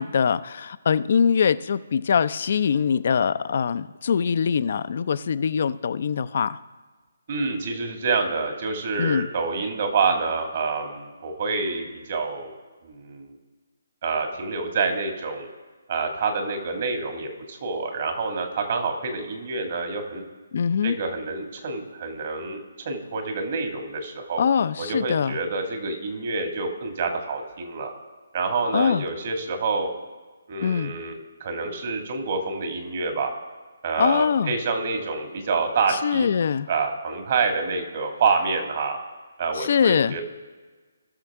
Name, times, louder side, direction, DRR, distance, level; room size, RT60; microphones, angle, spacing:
voice 1, 0.0-6.6 9.0-9.3 20.5-21.0 24.4-25.4 28.7-29.0 30.6-30.9 34.0-34.5 35.9-36.7 39.6-40.2, left 7 dB, 50° left, 14 dB, 0.5 m, -23 dB
voice 2, 7.3-12.5 12.8-13.3 14.0-15.5 15.9-20.2 20.8-24.4 24.8-27.9 28.3-29.9 30.5-33.3 33.8-36.3 36.7-39.0 39.4-40.2, right 4 dB, 45° right, 4 dB, 2.0 m, -27 dB
19.0 x 6.6 x 3.6 m, 1.4 s
figure-of-eight pair, 145°, 0 cm